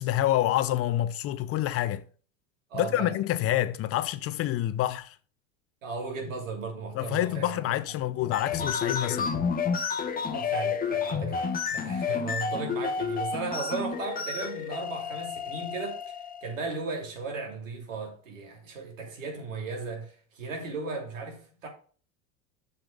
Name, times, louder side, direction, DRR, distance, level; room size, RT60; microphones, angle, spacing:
voice 1, 0.0-2.0 2.7-5.2 6.9-9.4, left 13 dB, 40° left, 0.6 m, -27 dB
voice 2, 2.7-3.2 5.8-7.6 10.1-21.7, right 4 dB, 90° right, 3.0 m, -36 dB
sound 1, 8.2-16.5, left 6 dB, 25° left, 0.9 m, -30 dB
7.6 x 5.8 x 5.0 m
hypercardioid pair, 100°, 38 cm